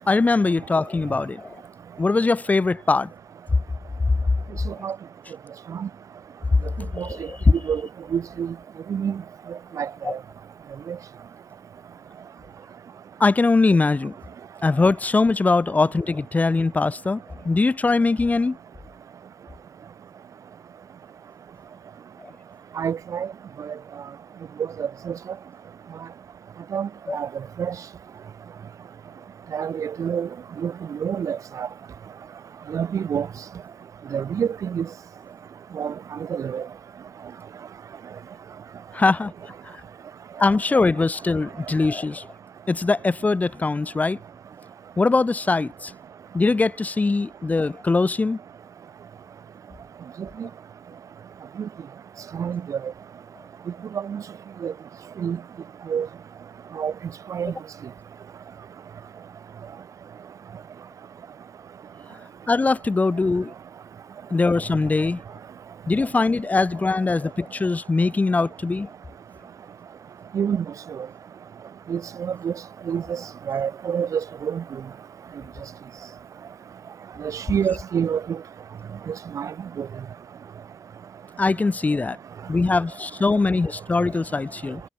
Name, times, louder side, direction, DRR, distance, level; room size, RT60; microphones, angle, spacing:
voice 1, 0.1-1.6 2.0-3.1 4.8-4.9 6.9-7.4 10.0-10.2 13.2-14.1 14.6-17.2 17.4-18.6 27.1-27.2 38.9-39.3 40.4-42.3 42.7-44.2 45.0-45.9 46.3-48.4 62.5-63.5 64.3-65.2 65.9-68.9 81.4-82.2 82.5-84.8, left 3 dB, 25° left, 2.5 m, -21 dB
voice 2, 8.1-8.5 8.9-9.2 9.8-10.2 10.9-11.0 22.8-23.3 24.8-25.1 26.7-27.3 27.6-27.7 29.5-30.3 30.6-30.7 31.0-31.7 32.7-33.3 34.1-34.9 35.7-35.9 36.3-36.6 50.4-50.5 51.6-51.7 52.3-52.8 54.1-54.2 54.6-54.7 55.2-55.4 55.9-56.1 56.8-56.9 57.3-57.5 70.3-70.6 71.9-72.5 72.9-73.2 73.5-74.6 77.2-78.4 79.1-79.5 79.8-79.9, right 7 dB, 55° right, 1.5 m, -27 dB
cardioid pair, 115°, 7 cm